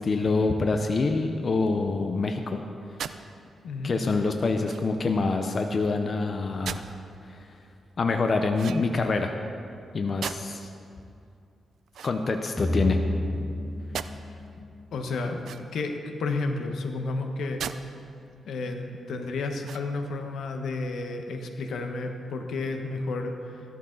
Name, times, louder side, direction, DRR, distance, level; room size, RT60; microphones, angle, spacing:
voice 1, 0.0-2.6 3.1-3.2 3.8-6.8 7.3-7.5 8.0-9.3 9.9-10.7 12.0-13.0, left 3 dB, 40° left, 5 dB, 0.7 m, -26 dB
sound 1, 3.0-3.2 4.6-5.0 6.6-7.0 8.5-9.1 10.2-10.7 11.9-12.7 13.9-14.1 15.4-15.9 17.6-17.8 18.3-18.4 19.6-20.1, right 8 dB, 75° right, 0.4 m, -38 dB
voice 2, 3.6-3.9 14.9-15.4 15.7-17.6 18.4-23.6, left 3 dB, 80° left, 5 dB, 1.1 m, -31 dB
sound 2, 12.6-15.5, left 1 dB, 10° left, 0.8 m, -30 dB
14.5 x 12.5 x 3.9 m, 2.5 s
cardioid pair, 115°, 0 cm